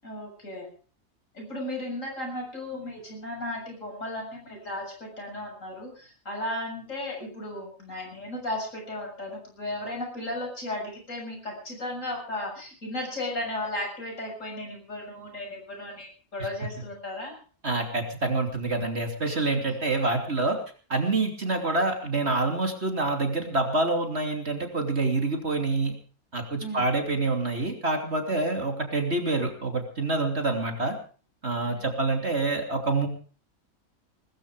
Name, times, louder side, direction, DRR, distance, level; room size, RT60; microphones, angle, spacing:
voice 1, 0.0-0.7 1.4-17.3 26.6-26.8 31.7-31.8, left 1 dB, 65° left, 1 dB, 7.4 m, -35 dB
voice 2, 17.6-20.6 20.9-25.9 26.3-30.9 31.4-33.1, right 2 dB, 50° right, 4 dB, 3.3 m, -27 dB
20.0 x 14.0 x 4.9 m, 0.40 s
omnidirectional pair, 1.5 m